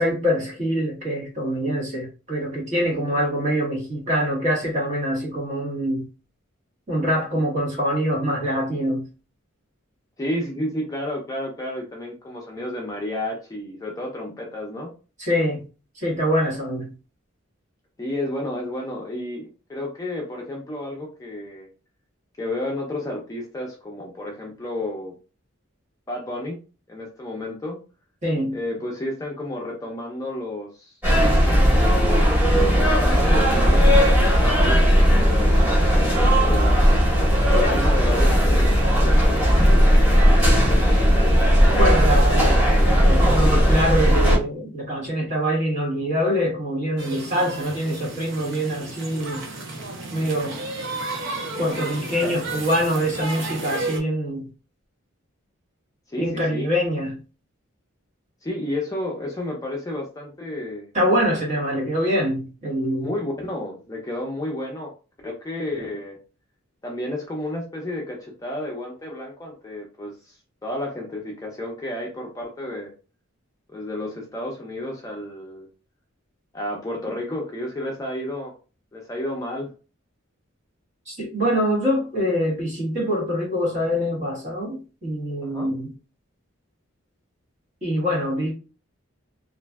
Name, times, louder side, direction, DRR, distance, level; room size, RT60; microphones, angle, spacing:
voice 1, 0.0-6.1 6.9-9.1 15.2-15.6 15.9-16.9 28.2-28.6 41.8-49.5 50.1-50.6 51.6-54.4 56.2-57.2 60.9-63.1 81.0-85.9 87.8-88.5, equal, 35° right, 1.4 m, -24 dB
voice 2, 10.2-14.9 18.0-21.7 22.4-25.1 26.1-26.6 26.9-27.8 28.5-31.0 31.6-32.4 32.7-34.0 34.3-37.0 37.5-39.2 39.7-41.4 52.2-52.7 56.1-56.7 58.4-60.9 63.0-64.9 65.2-66.2 66.8-70.4 70.6-72.9 73.7-75.7 76.5-78.5 78.9-79.7 85.4-85.7, left 1 dB, 15° left, 0.5 m, -31 dB
sound 1, 31.0-44.4, equal, 10° right, 1.4 m, -17 dB
sound 2, 47.0-54.0, right 2 dB, 60° right, 0.7 m, -33 dB
3.1 x 2.5 x 2.3 m
head